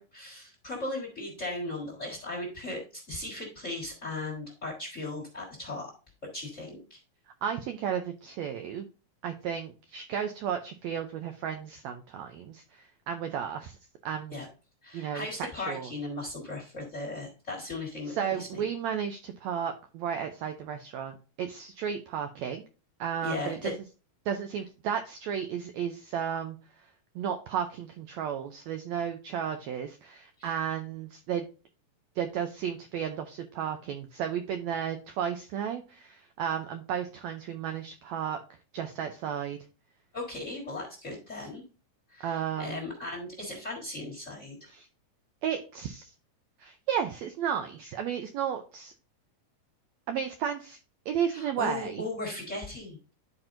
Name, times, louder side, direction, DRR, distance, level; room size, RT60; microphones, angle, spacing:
voice 1, 0.0-5.9 6.2-7.0 14.3-14.4 14.8-18.6 23.2-23.7 30.4-30.5 40.1-41.6 42.1-44.7 51.3-53.0, left 2 dB, 35° left, 0 dB, 1.2 m, -37 dB
voice 2, 7.4-8.8 9.2-13.8 14.0-14.4 14.9-15.9 18.2-22.6 23.0-23.7 24.3-26.6 27.1-31.4 32.2-38.4 38.7-39.6 42.2-42.8 44.7-44.9 45.4-46.1 46.6-48.9 50.1-50.8 51.1-52.0, right 8 dB, 85° right, 6 dB, 1.5 m, -33 dB
12.0 x 4.4 x 2.5 m, 0.34 s
omnidirectional pair, 3.8 m